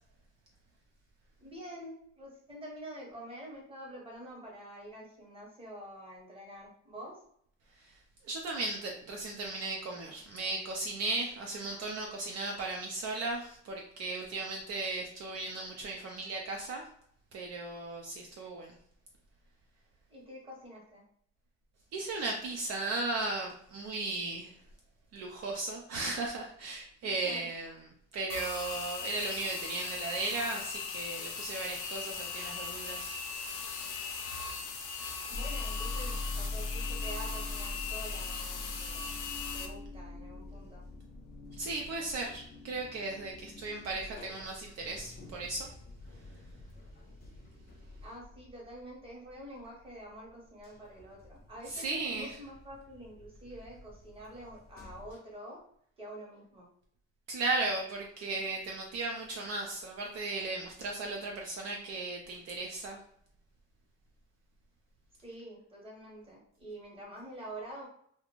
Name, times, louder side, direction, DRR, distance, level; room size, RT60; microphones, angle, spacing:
voice 1, 1.4-7.2 20.1-21.0 27.0-27.5 35.3-39.0 39.5-40.8 48.0-55.6 56.0-56.7 65.2-67.9, right 1 dB, 20° right, -3 dB, 0.9 m, -47 dB
voice 2, 8.2-16.8 17.3-18.7 21.9-24.5 25.1-33.1 41.6-45.7 51.7-52.4 57.3-63.0, right 3 dB, 55° right, 0 dB, 0.5 m, -36 dB
sound 1, 28.3-39.7, left 5 dB, 80° left, 0.6 m, -39 dB
sound 2, 35.3-49.9 50.3-55.1, left 2 dB, 35° left, 0.5 m, -43 dB
2.4 x 2.1 x 2.9 m, 0.66 s
cardioid pair, 150°, 30 cm